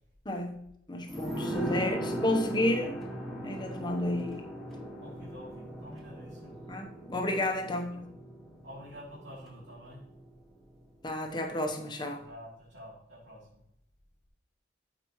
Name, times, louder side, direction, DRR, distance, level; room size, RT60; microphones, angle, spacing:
voice 1, 0.2-3.0 3.4-4.4 6.7-8.1 11.0-12.2, left 1 dB, 25° left, 3 dB, 1.0 m, -31 dB
sound 1, 1.1-10.4 10.7-10.8, right 1 dB, ahead, 1.7 m, -38 dB
voice 2, 1.5-2.0 5.0-6.6 7.6-7.7 8.6-10.0 12.1-13.6, equal, 75° right, -8 dB, 3.2 m, -48 dB
12.5 x 5.1 x 3.1 m, 0.78 s
head